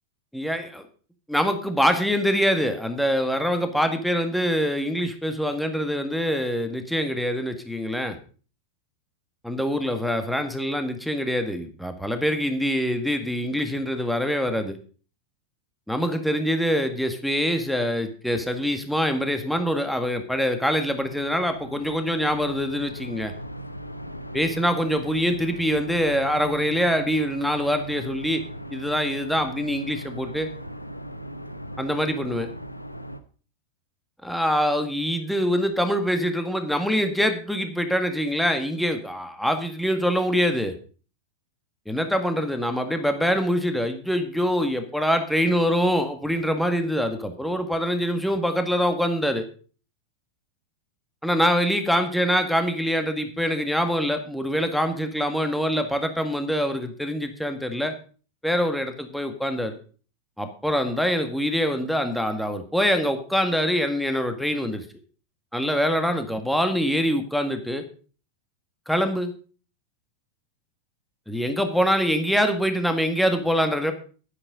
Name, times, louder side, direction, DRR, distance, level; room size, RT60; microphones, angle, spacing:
voice 1, 0.3-0.8 1.3-8.2 9.4-14.8 15.9-23.3 24.3-28.4 28.7-30.5 31.8-32.5 34.2-40.7 41.9-49.5 51.2-57.9 58.4-59.8 60.4-64.8 65.5-67.8 68.9-69.3 71.3-73.9, equal, ahead, 6 dB, 1.9 m, -24 dB
sound 1, 20.6-33.2, equal, 85° left, 0.9 m, -38 dB
11.0 x 9.8 x 5.2 m, 0.39 s
figure-of-eight pair, 90°, 0 cm